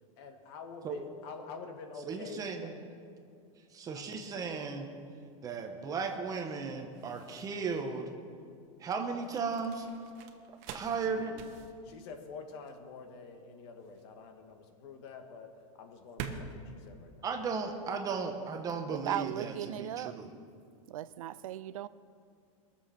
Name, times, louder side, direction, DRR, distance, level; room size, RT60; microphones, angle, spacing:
voice 1, 0.2-2.7 3.9-4.0 10.7-11.2 11.8-15.5 15.8-17.3, left 5 dB, 50° left, 1.6 m, -47 dB
voice 2, 2.1-2.7 3.7-4.9 5.4-8.1 8.8-9.9 10.7-11.3 17.2-20.3, right 5 dB, 20° right, 1.1 m, -35 dB
sound 1, 4.3-18.0, right 6 dB, 45° right, 1.2 m, -48 dB
voice 3, 18.9-20.3 20.9-21.9, right 13 dB, 85° right, 0.5 m, -37 dB
21.5 x 7.3 x 5.9 m
supercardioid pair, 155°, 17 cm